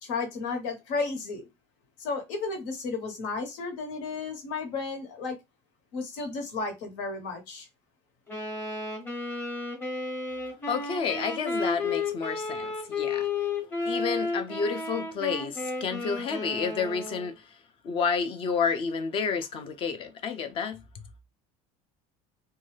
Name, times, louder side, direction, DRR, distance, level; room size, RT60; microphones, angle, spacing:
voice 1, 0.0-1.5 2.0-5.4 5.9-7.7, left 4 dB, 80° left, 1.2 m, -33 dB
Wind instrument woodwind instrument, 8.3-17.3, left 3 dB, 10° left, 0.9 m, -33 dB
voice 2, 10.7-13.5 13.8-17.3 17.8-20.8, left 6 dB, 30° left, 0.5 m, -30 dB
2.6 x 2.3 x 3.2 m
cardioid pair, 160°, 17 cm